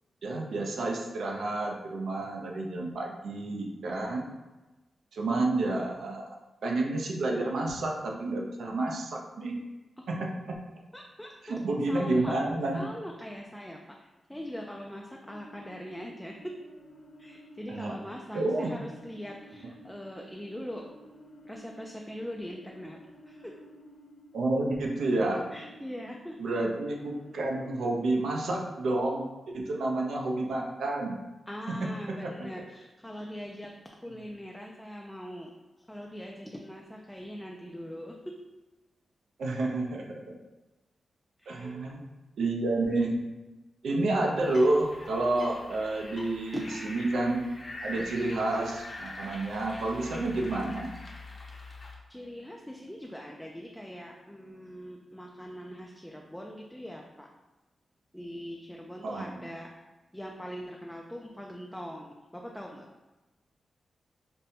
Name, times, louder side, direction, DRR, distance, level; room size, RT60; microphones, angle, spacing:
voice 1, 0.2-4.3 5.1-9.5 10.1-10.6 11.4-12.8 17.7-17.9 18.3-18.8 24.3-25.4 26.4-29.3 29.5-31.2 31.7-32.5 39.4-40.3 41.5-42.0 42.4-43.2 43.8-47.5 47.8-50.9 59.0-59.5, right 2 dB, 80° right, 0 dB, 0.6 m, -30 dB
voice 2, 10.9-11.5 11.9-12.4 12.7-16.5 17.2-20.8 21.5-23.0 23.3-23.5 25.5-26.4 31.5-33.7 34.0-35.5 35.9-38.3 41.4-41.8 46.5-46.6 52.1-57.3 58.1-59.7 60.1-62.9, equal, 5° left, 0 dB, 0.3 m, -41 dB
sound 1, 15.2-29.3, equal, 85° left, 0.4 m, -54 dB
sound 2, 44.4-51.9, left 2 dB, 40° left, 0.7 m, -44 dB
5.2 x 2.1 x 2.8 m, 1.1 s
wide cardioid pair, 100°, 0 cm